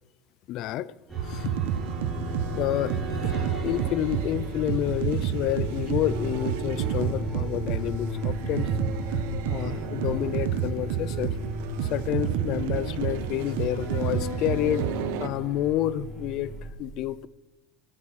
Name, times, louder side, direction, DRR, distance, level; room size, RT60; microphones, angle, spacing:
voice 1, 0.5-0.9 1.2-1.5 2.6-2.9 3.2-9.2 9.5-11.4 11.9-14.9 15.2-16.5 16.8-17.3, left 13 dB, 45° left, 0.5 m, -29 dB
sound 1, 1.1-16.7, equal, 10° right, 5.2 m, -35 dB
sound 2, 1.2-15.3, right 10 dB, 80° right, 0.8 m, -30 dB
20.5 x 9.8 x 4.2 m
cardioid pair, 160°, 0 cm